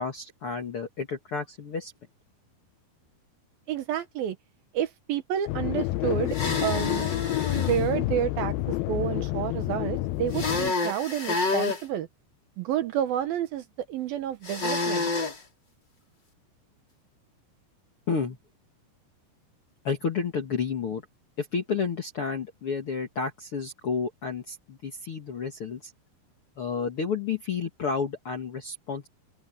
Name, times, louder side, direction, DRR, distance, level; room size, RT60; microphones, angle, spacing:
voice 1, 0.0-1.9 18.1-18.4 19.8-21.0 21.4-25.9 26.6-29.1, left 5 dB, 55° left, 1.6 m, -31 dB
voice 2, 3.7-4.4 4.7-6.4 6.6-7.1 7.5-12.1 12.6-15.1, right 10 dB, 70° right, 2.6 m, -30 dB
sound 1, 5.5-10.7, left 17 dB, 80° left, 2.2 m, -29 dB
sound 2, 6.3-7.8 10.3-11.8 14.4-15.4, left 3 dB, 25° left, 4.5 m, -28 dB
omnidirectional pair, 4.9 m